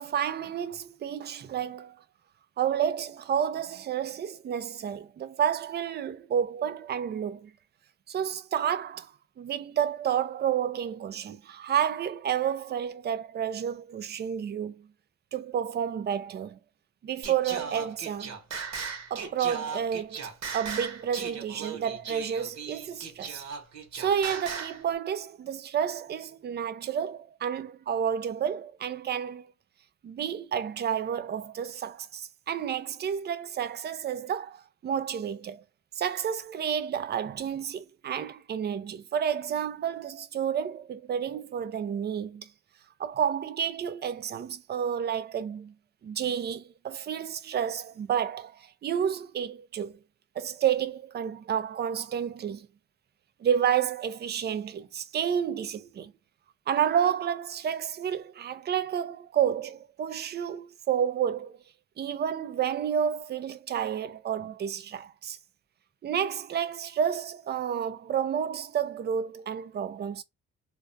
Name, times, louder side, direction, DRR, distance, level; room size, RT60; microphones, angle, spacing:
voice 1, 0.0-2.0 2.6-7.5 8.1-14.8 15.3-16.6 17.0-18.4 19.1-20.3 20.5-23.4 23.9-29.5 30.0-35.6 36.0-42.5 43.0-45.7 46.0-50.0 50.4-52.7 53.4-56.1 56.7-61.6 62.0-65.4 66.0-70.2, right 8 dB, 35° right, 0.4 m, -30 dB
Singing, 17.2-24.8, right 5 dB, 60° right, 0.9 m, -37 dB
2.3 x 2.2 x 2.5 m
cardioid pair, 90°, 30 cm